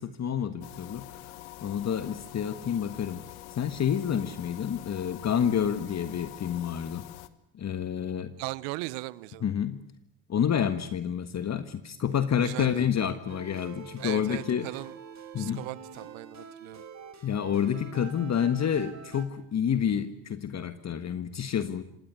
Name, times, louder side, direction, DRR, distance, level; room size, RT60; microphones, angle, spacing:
voice 1, 0.0-1.3 1.6-3.2 3.6-7.1 7.5-8.3 9.4-9.8 10.3-14.7 15.3-15.6 17.2-21.8, left 8 dB, 40° left, 11 dB, 1.5 m, -29 dB
sound 1, 0.6-7.3, left 16 dB, 85° left, 1.5 m, -45 dB
voice 2, 8.4-9.4 12.4-12.9 14.0-14.9 15.4-16.8, right 21 dB, 75° right, 21 dB, 1.0 m, -38 dB
sound 2, 13.3-19.2, right 6 dB, 40° right, 4.8 m, -46 dB
26.0 x 17.5 x 9.7 m, 0.82 s
supercardioid pair, 80°, 42 cm